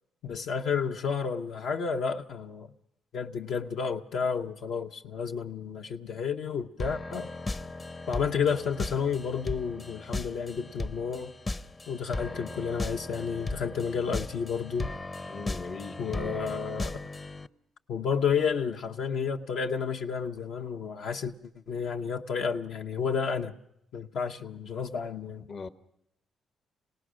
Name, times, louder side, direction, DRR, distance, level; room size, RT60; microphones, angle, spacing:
voice 1, 0.2-2.7 3.1-7.3 8.1-11.3 11.9-14.9 16.0-17.0 17.9-21.3 21.7-23.5 23.9-25.5, left 6 dB, 70° left, 0.9 m, -31 dB
sound 1, 6.8-17.5, left 2 dB, 25° left, 0.7 m, -37 dB
voice 2, 15.3-16.5 25.5-25.7, left 4 dB, 50° left, 1.0 m, -40 dB
27.0 x 18.5 x 6.3 m
cardioid pair, 90°, 0 cm